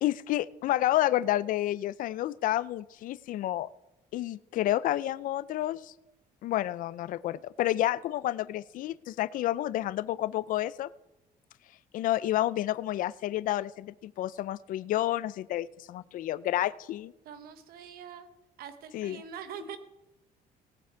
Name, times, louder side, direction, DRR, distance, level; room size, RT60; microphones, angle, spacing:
voice 1, 0.0-3.7 4.1-5.9 6.4-10.9 11.9-17.1 18.9-19.2, left 14 dB, 60° left, 19 dB, 0.4 m, -30 dB
voice 2, 17.2-18.3 18.6-19.8, right 8 dB, 70° right, 10 dB, 0.9 m, -43 dB
18.0 x 8.5 x 4.5 m, 0.98 s
cardioid pair, 165°, 16 cm